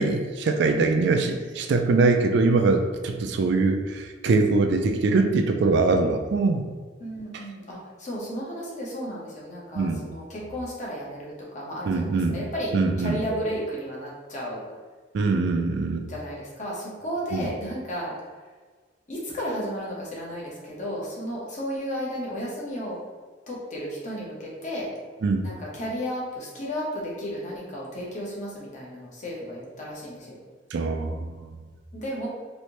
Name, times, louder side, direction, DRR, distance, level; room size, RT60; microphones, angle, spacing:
voice 1, 0.0-6.6 9.7-10.0 11.8-12.4 12.7-13.2 15.1-16.1 17.3-17.5 25.2-25.5 30.7-31.3, right 3 dB, 65° right, 5 dB, 0.3 m, -23 dB
voice 2, 7.0-14.6 16.1-18.1 19.1-23.0 23.5-24.9 25.4-30.4 31.9-32.3, equal, 45° left, -4 dB, 0.9 m, -33 dB
3.2 x 2.6 x 2.9 m, 1.5 s
head